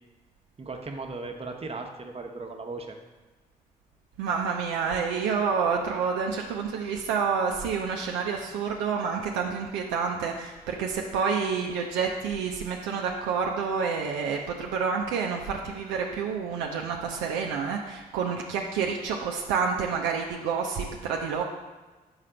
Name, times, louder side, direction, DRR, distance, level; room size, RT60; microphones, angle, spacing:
voice 1, 0.6-3.0 6.8-6.9, right 3 dB, 30° right, 3 dB, 0.9 m, -37 dB
voice 2, 4.2-21.4, right 6 dB, 75° right, 1 dB, 0.5 m, -28 dB
4.8 x 4.3 x 5.0 m, 1.3 s
hypercardioid pair, 40°, 19 cm